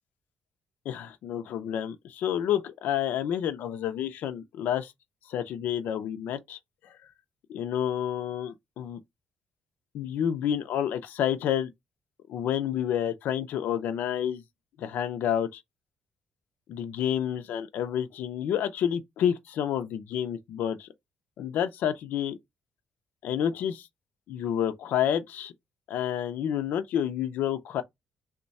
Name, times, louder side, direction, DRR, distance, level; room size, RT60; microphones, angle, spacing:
voice 1, 0.9-4.9 5.3-7.0 7.5-9.0 9.9-11.7 12.3-14.4 14.8-15.6 16.7-20.9 21.4-22.4 23.2-23.9 24.3-25.5 25.9-27.8, left 9 dB, 65° left, 0.5 m, -29 dB
3.1 x 2.2 x 4.0 m
cardioid pair, 175°, 3 cm